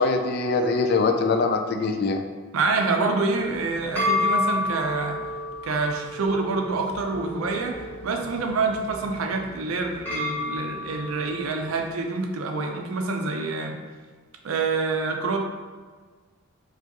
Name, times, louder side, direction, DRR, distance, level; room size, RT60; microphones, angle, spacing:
voice 1, 0.0-2.2, left 3 dB, 50° left, 6 dB, 0.3 m, -23 dB
voice 2, 2.5-5.2 5.6-13.8 14.4-15.4, right 3 dB, 75° right, 3 dB, 0.5 m, -27 dB
sound 1, 3.3-11.8, left 2 dB, 10° left, 1.2 m, -31 dB
4.6 x 2.4 x 2.9 m, 1.4 s
head